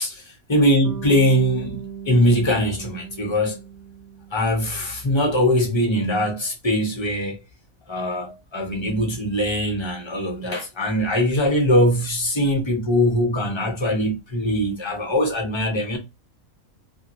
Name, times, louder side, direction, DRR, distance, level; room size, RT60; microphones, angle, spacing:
voice 1, 0.5-3.6 4.3-7.4 7.9-16.0, equal, 30° left, 0.6 m, -21 dB
Bass guitar, 0.8-5.1, right 6 dB, 45° right, 0.6 m, -38 dB
2.7 x 2.7 x 2.4 m
omnidirectional pair, 1.5 m